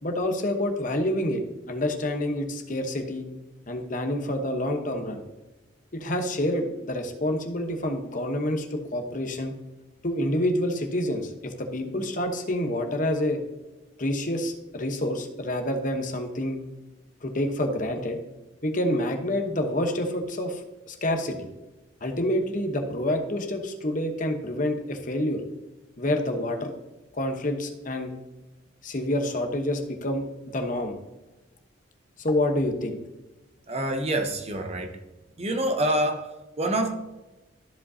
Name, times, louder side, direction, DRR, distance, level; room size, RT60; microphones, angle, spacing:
voice 1, 0.0-3.3 3.7-5.2 5.9-9.5 10.0-13.4 14.0-16.6 17.2-18.2 18.6-21.5 22.0-25.4 26.0-26.7 27.1-28.1 28.8-31.0 32.2-33.0, left 1 dB, 40° left, 1.0 m, -28 dB
voice 2, 33.7-35.0 35.4-36.9, right 1 dB, 30° right, 0.9 m, -27 dB
13.5 x 5.3 x 2.7 m
head